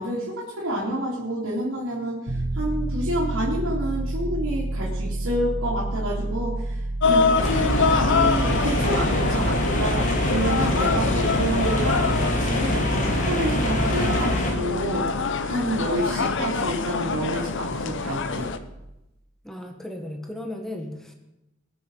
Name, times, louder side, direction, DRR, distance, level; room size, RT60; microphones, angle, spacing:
voice 1, 0.0-15.2 15.4-18.5, right 1 dB, 75° right, -6 dB, 3.0 m, -29 dB
Piano, 2.3-18.9, right 1 dB, 50° right, 1.9 m, -32 dB
sound 1, 7.0-18.6, left 4 dB, 60° left, 0.9 m, -26 dB
sound 2, 7.4-14.5, equal, 35° left, 2.4 m, -25 dB
voice 2, 19.4-21.1, left 1 dB, ahead, 3 dB, 1.6 m, -36 dB
20.5 x 7.0 x 5.6 m, 0.92 s
head